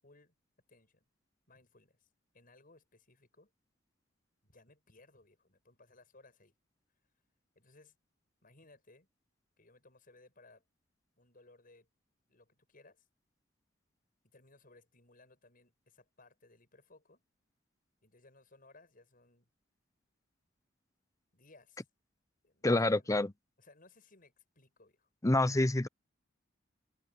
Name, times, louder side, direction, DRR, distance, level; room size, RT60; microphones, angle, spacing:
voice 1, 0.0-0.3 0.7-1.1 1.5-2.1 2.3-3.5 4.4-6.5 7.5-8.0 8.4-9.1 9.6-10.6 11.2-11.9 12.3-13.1 14.2-17.2 18.0-19.5 21.3-21.9 22.4-23.1 23.6-25.1, left 2 dB, 50° left, 7.8 m, -62 dB
voice 2, 22.6-23.3 25.2-25.9, left 2 dB, 15° left, 0.7 m, -27 dB
head